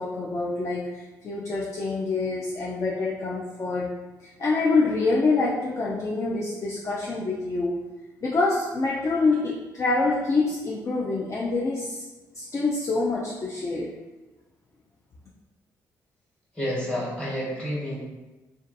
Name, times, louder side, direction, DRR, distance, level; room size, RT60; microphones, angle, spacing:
voice 1, 0.0-3.9 4.2-7.8 8.2-12.0 12.3-14.0, left 3 dB, 40° left, -4 dB, 0.4 m, -26 dB
voice 2, 16.5-18.1, equal, 15° left, -8 dB, 1.3 m, -29 dB
2.5 x 2.3 x 2.5 m, 1.2 s
supercardioid pair, 60°, 8 cm